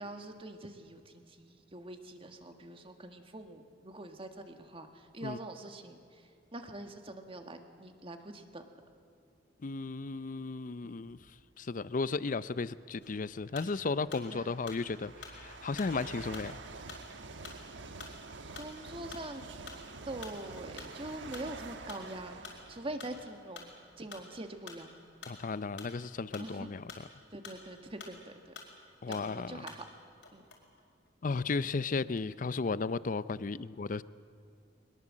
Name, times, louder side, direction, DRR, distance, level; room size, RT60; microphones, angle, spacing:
voice 1, 0.0-8.6 10.8-11.0 14.3-14.6 18.5-19.4 20.1-23.7 24.0-24.9 26.4-26.8 27.3-28.6 29.1-29.8 30.3-30.4, right 1 dB, 30° right, 6 dB, 1.6 m, -44 dB
voice 2, 9.6-11.2 11.6-16.6 25.3-26.8 29.0-29.6 31.2-34.0, left 4 dB, 45° left, 17 dB, 0.5 m, -34 dB
sound 1, 11.1-11.4 12.5-12.6 13.4-24.8 25.4-25.5 26.3-26.4 26.6-28.2, right 3 dB, 85° right, 1.2 m, -48 dB
sound 2, 13.0-14.3 14.7-28.3 28.6-30.0 30.2-31.5 31.9-32.5, left 5 dB, 70° left, 4.8 m, -49 dB
22.5 x 21.0 x 7.5 m, 2.4 s
head